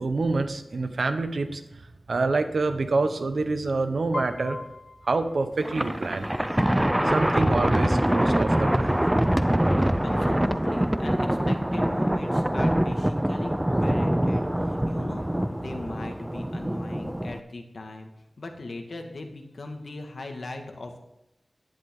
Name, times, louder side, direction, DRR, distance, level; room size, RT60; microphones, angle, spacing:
voice 1, 0.0-1.6 2.1-4.6 5.0-6.3 7.0-8.9, right 3 dB, 85° right, 8 dB, 1.1 m, -26 dB
Piano, 4.1-6.2, left 2 dB, 60° left, 0.6 m, -40 dB
Thunder, 5.6-17.4, right 1 dB, 10° right, 0.5 m, -24 dB
voice 2, 10.0-18.1 18.4-21.0, left 2 dB, 80° left, 4 dB, 1.8 m, -39 dB
11.5 x 10.5 x 3.8 m, 0.88 s
wide cardioid pair, 55°, 0 cm